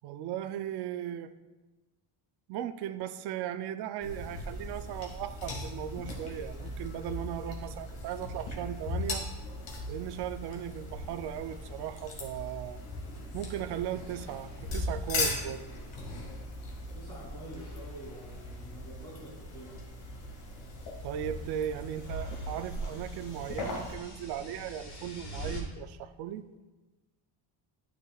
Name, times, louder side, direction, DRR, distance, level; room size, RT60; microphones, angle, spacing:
voice 1, 0.0-1.3 2.5-9.3 9.9-12.8 13.3-15.6 21.0-26.4, right 10 dB, 60° right, 11 dB, 0.5 m, -37 dB
sound 1, 4.0-23.9, left 2 dB, 65° left, 2.1 m, -39 dB
sound 2, 11.3-13.7 14.0-15.3 15.6-16.8 17.4-25.6, equal, 35° left, 1.7 m, -50 dB
voice 2, 16.9-19.7, right 1 dB, 10° left, -6 dB, 2.6 m, -47 dB
12.0 x 6.5 x 2.3 m, 1.2 s
cardioid pair, 175°, 47 cm